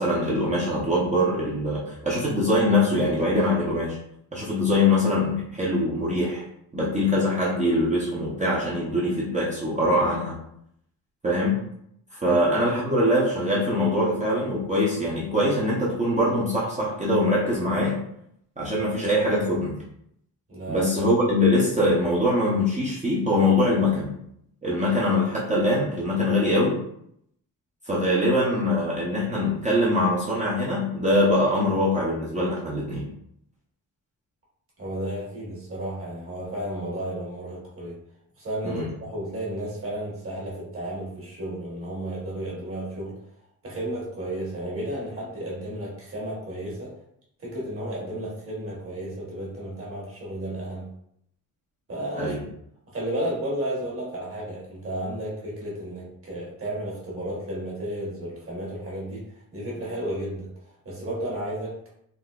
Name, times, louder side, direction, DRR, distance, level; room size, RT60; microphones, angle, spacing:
voice 1, 0.0-4.0 4.3-6.4 6.7-10.4 11.2-11.6 12.1-18.0 18.6-19.7 20.7-24.1 24.6-26.8 27.9-33.1 38.6-38.9 52.1-52.4, left 1 dB, 20° right, -6 dB, 0.6 m, -23 dB
voice 2, 20.5-20.8 34.8-38.0 38.4-43.2 43.6-46.9 47.4-50.9 51.9-52.5 52.9-61.9, right 1 dB, 35° right, -4 dB, 1.2 m, -33 dB
3.6 x 2.7 x 2.3 m, 0.73 s
wide cardioid pair, 155°, 36 cm